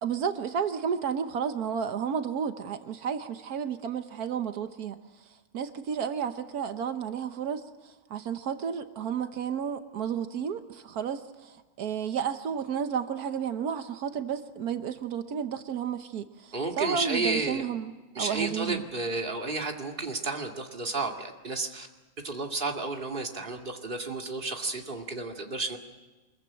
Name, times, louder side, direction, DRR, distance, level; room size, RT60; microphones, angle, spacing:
voice 1, 0.0-5.0 5.5-18.8, right 7 dB, 85° right, 8 dB, 1.5 m, -32 dB
voice 2, 16.5-17.7 18.2-21.9 22.2-25.8, right 3 dB, 35° right, 2 dB, 2.4 m, -32 dB
25.0 x 22.0 x 8.7 m, 1.2 s
omnidirectional pair, 1.6 m